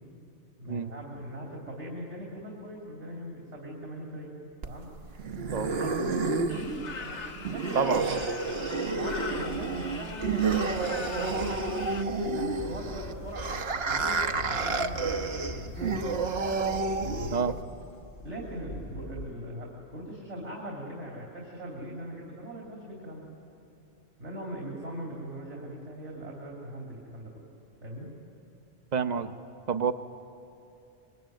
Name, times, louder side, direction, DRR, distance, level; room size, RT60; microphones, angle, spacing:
voice 1, 0.6-4.4 4.6-4.9 5.6-7.2 7.5-8.2 8.9-11.5 12.2-16.2 17.0-17.4 18.2-23.3 24.2-27.5 27.8-28.1, right 1 dB, 85° right, -2 dB, 3.4 m, -40 dB
sound 1, 4.6-17.6, right 4 dB, 60° right, 1.2 m, -30 dB
voice 2, 5.5-5.9 7.7-8.0 17.3-17.5 28.9-29.3 29.7-29.9, right 6 dB, 40° right, 9 dB, 0.9 m, -28 dB
sound 2, 6.5-12.0, left 5 dB, 75° left, 1.6 m, -41 dB
Train, 9.3-19.3, left 1 dB, 35° left, 1.1 m, -43 dB
26.0 x 22.5 x 9.2 m, 2.9 s
omnidirectional pair, 1.2 m